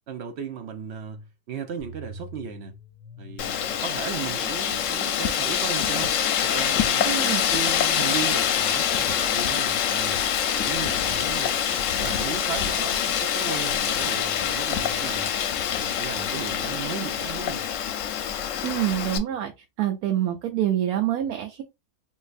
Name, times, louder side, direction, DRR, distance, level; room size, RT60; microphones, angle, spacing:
voice 1, 0.1-2.7 3.2-10.2 10.5-11.6 12.0-15.3 15.7-17.7, right 7 dB, 65° right, 0.7 m, -36 dB
sound 1, 1.8-11.8, right 1 dB, 25° right, 1.3 m, -49 dB
Wind, 3.4-19.2, left 9 dB, 70° left, 0.8 m, -25 dB
voice 2, 7.0-7.5 18.6-19.5 19.8-21.6, right 12 dB, 90° right, 1.1 m, -26 dB
3.8 x 2.6 x 2.5 m
omnidirectional pair, 1.6 m